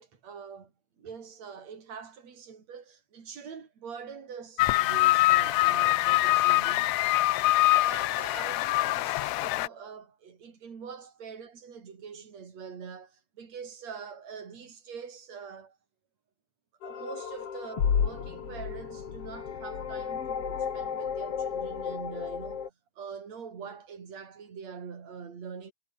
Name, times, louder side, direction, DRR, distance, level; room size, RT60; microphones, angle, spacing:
voice 1, 0.0-7.0 7.7-15.8 16.8-25.7, right 6 dB, 65° right, 4.8 m, -44 dB
sound 1, 4.6-9.7, left 18 dB, 80° left, 1.9 m, -24 dB
sound 2, 16.8-22.7, left 7 dB, 55° left, 3.1 m, -32 dB
omnidirectional pair, 3.3 m